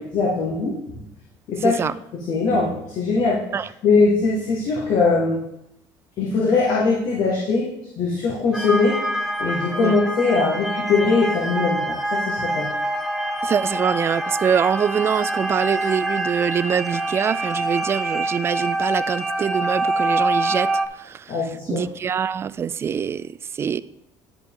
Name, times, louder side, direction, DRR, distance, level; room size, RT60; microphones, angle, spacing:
voice 1, 0.1-1.0 1.5-1.8 2.1-3.4 3.8-5.4 6.2-7.7 8.0-9.0 9.4-12.7 21.3-21.8, left 4 dB, 65° left, -4 dB, 1.8 m, -21 dB
voice 2, 1.6-1.9 3.5-3.7 9.8-10.0 13.4-20.7 21.0-21.4 21.7-23.8, right 7 dB, 30° right, 16 dB, 0.3 m, -24 dB
sound 1, 8.5-20.9, right 1 dB, ahead, 0.8 m, -25 dB
11.0 x 4.9 x 3.8 m, 0.80 s
cardioid pair, 105°, 8 cm